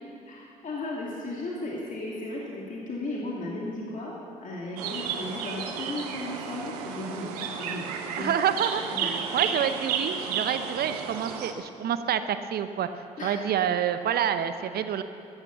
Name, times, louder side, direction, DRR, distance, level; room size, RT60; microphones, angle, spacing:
voice 1, 0.3-4.1 4.4-7.3 7.6-8.3 8.9-9.4 13.2-13.4, left 2 dB, 40° left, -4 dB, 2.6 m, -35 dB
sound 1, 4.8-11.5, right 7 dB, 80° right, 0.9 m, -32 dB
voice 2, 8.2-12.9 13.2-15.0, right 9 dB, 55° right, 11 dB, 0.7 m, -28 dB
14.0 x 11.5 x 7.1 m, 2.6 s
hypercardioid pair, 50°, 19 cm